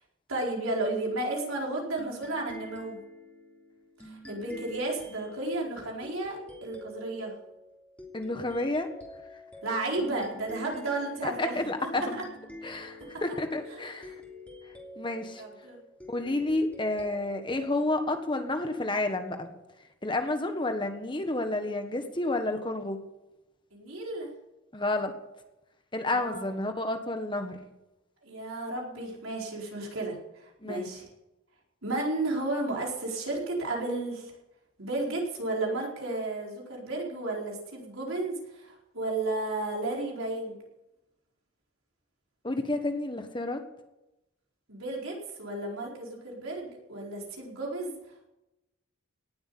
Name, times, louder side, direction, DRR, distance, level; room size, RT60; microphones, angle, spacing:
voice 1, 0.3-3.0 4.0-7.3 9.6-11.6 11.9-12.2 13.7-14.1 15.4-15.8 23.7-24.3 26.1-26.4 28.2-31.0 31.8-34.3 34.8-40.6 44.7-47.9, right 2 dB, 85° right, -2 dB, 4.7 m, -33 dB
sound 1, 2.0-19.1, left 1 dB, 5° left, 3.1 m, -48 dB
voice 2, 8.1-8.9 11.2-12.2 12.6-14.1 15.0-15.4 16.1-19.5 20.0-23.0 24.7-25.1 25.9-27.6 30.6-30.9 42.4-43.6, left 2 dB, 25° left, 7 dB, 1.4 m, -30 dB
18.5 x 8.2 x 8.5 m, 0.95 s
head